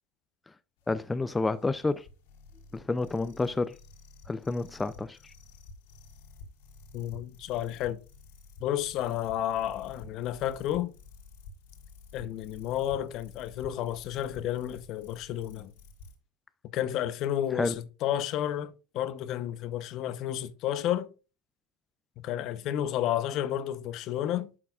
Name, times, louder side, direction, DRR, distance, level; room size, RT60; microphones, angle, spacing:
sound 1, 0.8-16.2, left 3 dB, 80° left, 2.3 m, -51 dB
voice 1, 0.9-2.0 2.7-3.8 4.3-5.3 17.5-17.8, left 3 dB, 15° left, 0.4 m, -29 dB
voice 2, 6.9-8.0 8.6-10.9 12.1-15.7 16.7-21.1 22.2-24.5, left 11 dB, 55° left, 0.8 m, -31 dB
11.0 x 5.8 x 2.4 m
hypercardioid pair, 95°, 0 cm